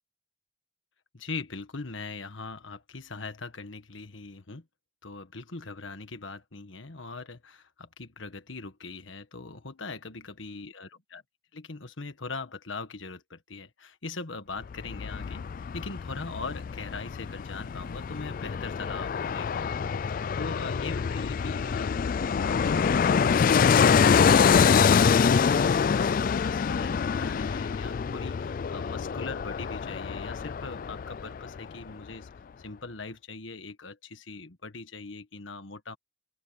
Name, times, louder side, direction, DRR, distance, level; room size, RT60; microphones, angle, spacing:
voice 1, 1.1-4.6 5.0-11.2 11.5-15.5 15.7-23.1 23.7-32.3 32.6-36.0, left 3 dB, 80° left, 1.5 m, -41 dB
Fixed-wing aircraft airplane, 14.6-31.6 31.9-32.0, left 6 dB, 45° left, 0.3 m, -25 dB
open air
head